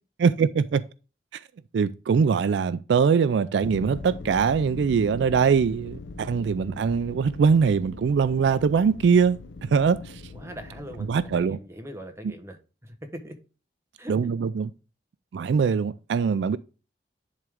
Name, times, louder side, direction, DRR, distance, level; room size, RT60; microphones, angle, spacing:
voice 1, 0.2-0.8 1.7-10.2 11.1-11.6 14.1-14.7 15.3-16.6, right 6 dB, 80° right, 0.3 m, -22 dB
sound 1, 3.6-11.5, left 3 dB, 85° left, 0.6 m, -41 dB
voice 2, 10.3-13.4 14.0-14.2, equal, 15° right, 1.0 m, -41 dB
10.5 x 3.7 x 3.4 m
head